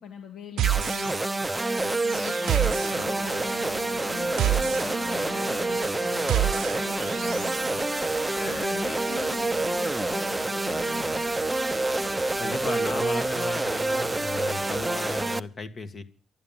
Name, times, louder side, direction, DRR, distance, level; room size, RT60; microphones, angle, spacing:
voice 1, 0.0-1.3 1.6-7.9 8.4-11.3, left 7 dB, 70° left, 2.6 m, -41 dB
sound 1, 0.6-15.4, right 2 dB, 10° right, 0.7 m, -27 dB
sound 2, 0.6-7.8, right 12 dB, 80° right, 0.7 m, -30 dB
sound 3, 2.6-15.2, left 4 dB, 90° left, 4.5 m, -45 dB
voice 2, 12.4-16.0, left 3 dB, 40° left, 1.8 m, -35 dB
12.5 x 10.5 x 7.3 m
cardioid pair, 105°, 0 cm